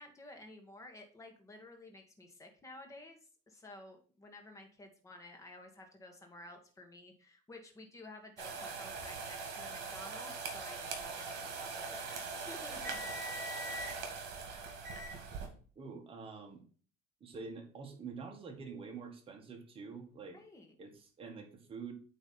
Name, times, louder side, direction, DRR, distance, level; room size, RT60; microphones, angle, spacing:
voice 1, 0.0-3.2 3.5-13.0 20.3-20.7, left 2 dB, 15° left, 4 dB, 1.4 m, -53 dB
sound 1, 8.4-15.5, right 4 dB, 60° right, 2.3 m, -41 dB
voice 2, 15.7-16.6 17.2-20.4 20.8-21.9, right 5 dB, 30° right, 2 dB, 1.6 m, -46 dB
8.9 x 3.1 x 5.5 m, 0.41 s
cardioid pair, 150°, 20 cm